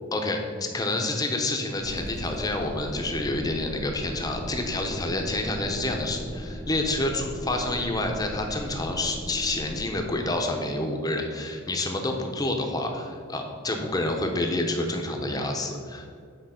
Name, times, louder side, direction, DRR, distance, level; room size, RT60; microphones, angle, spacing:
voice 1, 0.1-16.2, left 2 dB, 20° left, 3 dB, 0.9 m, -28 dB
sound 1, 1.8-9.8, equal, 80° right, 2.3 m, -38 dB
9.1 x 4.5 x 5.8 m, 2.2 s
head